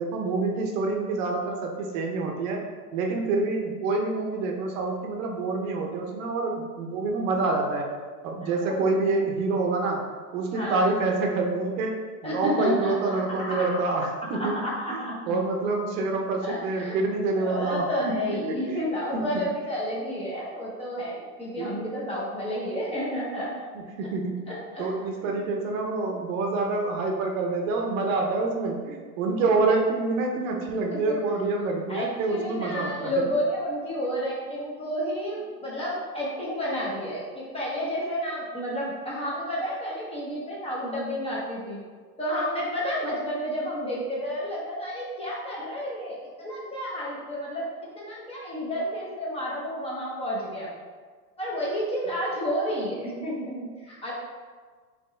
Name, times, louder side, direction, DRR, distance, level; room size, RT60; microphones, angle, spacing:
voice 1, 0.0-2.6 2.9-7.9 8.2-10.0 10.3-14.6 14.9-17.9 18.5-18.8 19.3-19.4 21.6-21.7 23.7-24.5 24.8-33.2, right 3 dB, 55° right, 2 dB, 0.8 m, -27 dB
voice 2, 8.4-9.1 10.5-10.9 12.2-13.7 14.4-15.1 16.4-17.0 17.4-23.6 24.5-24.9 25.2-25.4 30.9-31.1 31.9-41.8 42.2-47.7 47.9-50.7 51.4-54.1, equal, 15° left, -6 dB, 0.8 m, -31 dB
4.3 x 3.1 x 3.2 m, 1.5 s
supercardioid pair, 130°, 47 cm